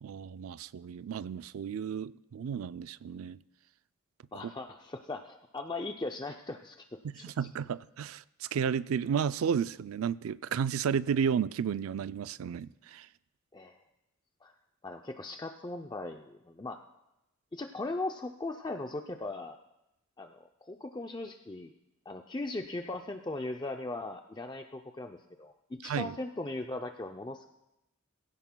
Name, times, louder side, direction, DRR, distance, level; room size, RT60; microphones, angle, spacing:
voice 1, 0.0-3.4 4.4-4.5 7.2-13.1 25.8-26.1, right 7 dB, 80° right, 0.4 m, -32 dB
voice 2, 4.3-7.3 13.5-13.8 14.4-14.5 14.8-16.8 17.5-19.6 20.2-21.7 22.1-27.5, left 2 dB, 20° left, 0.4 m, -39 dB
22.5 x 16.0 x 2.2 m
head